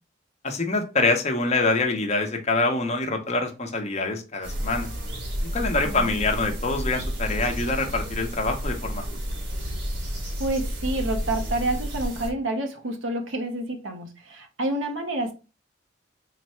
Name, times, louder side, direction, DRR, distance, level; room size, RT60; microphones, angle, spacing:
voice 1, 0.4-4.9 5.4-9.0, left 3 dB, 35° left, 0.8 m, -25 dB
sound 1, 4.4-12.3, equal, 65° right, 1.2 m, -31 dB
voice 2, 10.4-15.3, right 1 dB, 90° right, 0.9 m, -28 dB
4.0 x 2.2 x 4.2 m
head